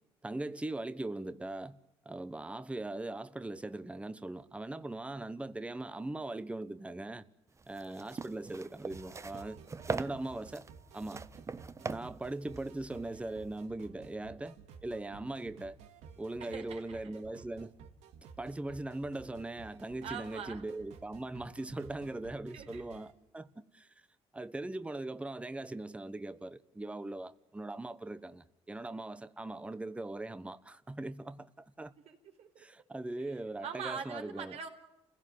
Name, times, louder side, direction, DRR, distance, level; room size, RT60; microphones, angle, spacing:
voice 1, 0.2-1.8 2.0-7.2 7.7-9.6 9.9-10.7 10.9-11.2 11.8-15.8 16.2-17.7 18.4-23.9 24.3-31.9 32.6-34.5, right 2 dB, 10° right, 1.1 m, -40 dB
sound 1, 7.6-13.6, right 4 dB, 25° right, 1.0 m, -42 dB
sound 2, 8.9-23.1, right 6 dB, 90° right, 2.4 m, -54 dB
voice 2, 16.4-17.0 20.0-20.6 22.5-23.0 32.1-32.7 33.2-34.7, right 7 dB, 70° right, 4.5 m, -43 dB
29.0 x 16.5 x 9.7 m
cardioid pair, 95°, 11 cm